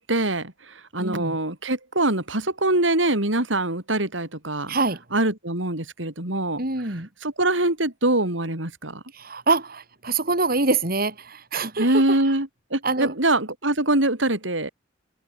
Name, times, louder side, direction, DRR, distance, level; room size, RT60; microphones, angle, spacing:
voice 1, 0.0-4.8 5.1-6.6 6.9-9.0 11.8-14.7, right 2 dB, 90° right, 5.7 m, -24 dB
voice 2, 1.0-1.4 4.7-5.0 6.6-7.1 9.1-12.3 12.8-13.1, right 3 dB, 50° right, 3.7 m, -25 dB
head